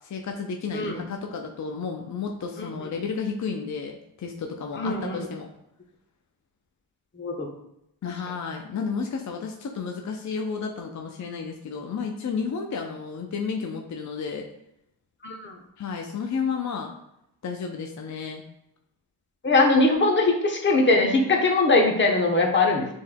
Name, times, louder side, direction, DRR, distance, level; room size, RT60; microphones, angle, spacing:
voice 1, 0.0-5.5 8.0-14.5 15.8-16.9 17.4-18.4, left 5 dB, 40° left, 2 dB, 0.5 m, -32 dB
voice 2, 4.8-5.2 7.2-7.5 15.2-15.5 19.4-22.9, left 3 dB, 25° left, 1 dB, 0.9 m, -21 dB
5.2 x 3.5 x 2.2 m, 0.80 s
supercardioid pair, 45°, 47 cm